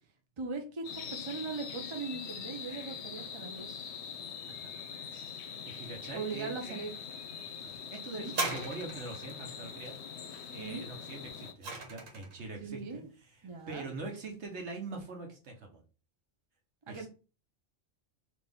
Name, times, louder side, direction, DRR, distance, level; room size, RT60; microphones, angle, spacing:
voice 1, 0.4-3.9 6.1-6.9 8.1-8.3 10.6-10.9 12.6-13.1 13.4-13.9 16.9-17.1, right 4 dB, 30° right, 3 dB, 0.6 m, -40 dB
sound 1, 0.8-11.5, left 7 dB, 65° left, 0.8 m, -43 dB
voice 2, 5.3-6.8 7.6-10.0 10.5-13.4 13.7-15.8 16.9-17.1, right 3 dB, 60° right, 2 dB, 1.3 m, -43 dB
sound 2, 8.3-9.3 11.0-12.4 13.2-13.3, right 3 dB, 85° right, 1.5 m, -37 dB
4.2 x 2.9 x 3.5 m, 0.34 s
omnidirectional pair, 1.3 m